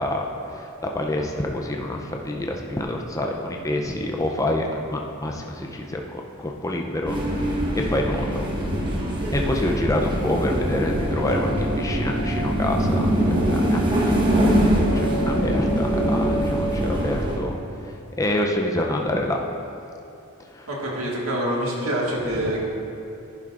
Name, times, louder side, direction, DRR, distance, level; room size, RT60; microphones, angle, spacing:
voice 1, 0.0-8.4 9.3-13.0 13.3-14.7 14.9-19.4 20.5-20.7, left 1 dB, 15° left, 1 dB, 0.5 m, -27 dB
sound 1, 7.1-17.4, equal, 20° right, 1.1 m, -23 dB
voice 2, 20.7-22.7, right 1 dB, 70° right, -4 dB, 1.7 m, -26 dB
11.0 x 10.5 x 2.5 m, 2.8 s
head